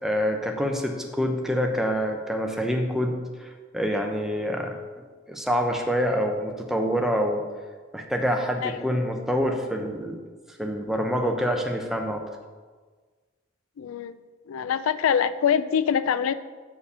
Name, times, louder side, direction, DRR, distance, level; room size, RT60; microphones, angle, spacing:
voice 1, 0.0-4.8 5.3-7.4 7.9-10.2 10.5-12.2, equal, ahead, 2 dB, 0.6 m, -26 dB
voice 2, 13.8-14.2 14.5-16.3, left 7 dB, 85° left, 14 dB, 0.3 m, -24 dB
8.3 x 4.7 x 5.5 m, 1.5 s
head